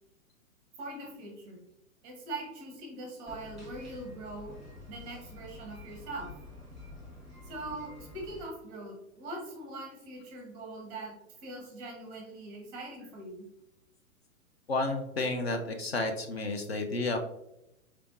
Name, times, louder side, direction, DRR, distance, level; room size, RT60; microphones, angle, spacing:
voice 1, 0.8-1.6 2.0-4.5 4.9-6.3 7.4-11.1 11.4-13.5, right 2 dB, 15° right, 0 dB, 0.7 m, -42 dB
sound 1, 3.3-8.4, left 2 dB, ahead, 1.4 m, -48 dB
voice 2, 14.7-17.2, left 2 dB, 50° left, 5 dB, 0.5 m, -31 dB
4.3 x 3.3 x 2.5 m, 0.84 s
figure-of-eight pair, 115°, 42 cm